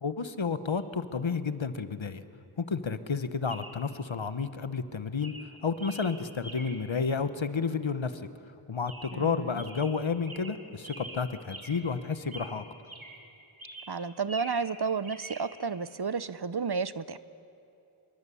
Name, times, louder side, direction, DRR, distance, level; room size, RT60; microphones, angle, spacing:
voice 1, 0.0-2.2 2.6-5.3 5.6-8.2 8.7-12.6, left 5 dB, 65° left, 12 dB, 1.2 m, -31 dB
Chirp tweet, 0.7-0.9 3.5-3.9 4.6-4.9 5.2-6.9 8.9-9.3 9.6-12.0 12.2-13.3 13.6-14.7 15.0-15.5, right 2 dB, 70° right, 2.9 m, -45 dB
voice 2, 9.1-9.6 13.9-17.2, right 5 dB, 50° right, 15 dB, 0.8 m, -32 dB
26.5 x 22.5 x 8.5 m, 2.7 s
wide cardioid pair, 40°, 50 cm